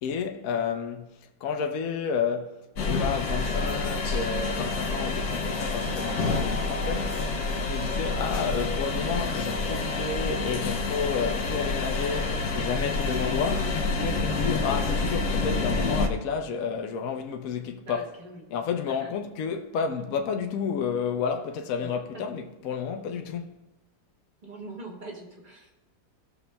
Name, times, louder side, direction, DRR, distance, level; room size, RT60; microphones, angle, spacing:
voice 1, 0.0-18.0 18.5-23.5, left 6 dB, 70° left, 1.1 m, -31 dB
sound 1, 2.8-16.1, left 3 dB, 85° left, 1.4 m, -28 dB
voice 2, 17.9-18.4 18.9-19.1 21.8-22.2 24.4-25.7, right 2 dB, 30° right, 1.7 m, -42 dB
19.5 x 6.9 x 2.2 m
omnidirectional pair, 1.6 m